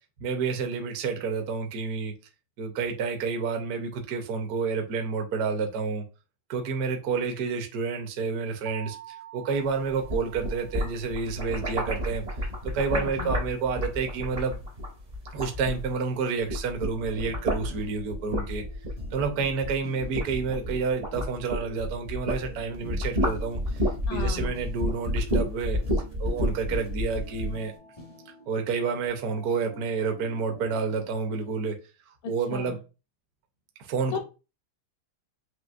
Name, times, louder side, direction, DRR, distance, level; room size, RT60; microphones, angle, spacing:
voice 1, 0.2-2.1 2.6-6.0 6.5-12.2 12.7-14.6 15.3-18.6 19.1-23.6 24.1-25.8 26.2-27.7 28.5-31.7 32.3-32.8 33.9-34.2, right 5 dB, 60° right, 4 dB, 1.0 m, -29 dB
sound 1, 8.7-11.4, right 14 dB, 80° right, 1.8 m, -46 dB
sound 2, 9.9-16.1 16.4-22.4 22.7-27.6, equal, 45° right, 0.5 m, -30 dB
voice 2, 12.9-13.3 24.1-24.5 32.2-32.8 34.1-34.2, left 6 dB, 75° left, 4 dB, 1.4 m, -35 dB
sound 3, 17.0-31.6, left 2 dB, 40° left, 0.5 m, -47 dB
6.1 x 2.7 x 2.4 m, 0.31 s
omnidirectional pair, 2.3 m